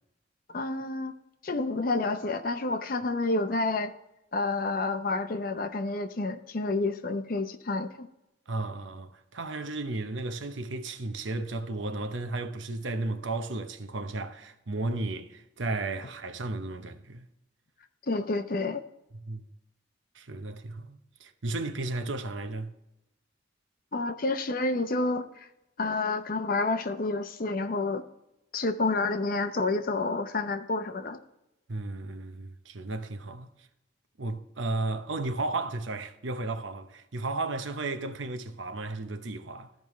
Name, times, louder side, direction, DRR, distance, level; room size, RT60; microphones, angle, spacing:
voice 1, 0.5-1.1 1.4-3.9 4.3-8.1 18.1-18.8 23.9-25.3 25.8-28.0 28.5-31.2, left 3 dB, 50° left, 0.6 m, -29 dB
voice 2, 8.5-17.3 19.1-19.5 20.1-22.7 31.7-33.5 34.2-39.7, right 2 dB, 90° right, 0.8 m, -34 dB
14.0 x 5.3 x 3.1 m
head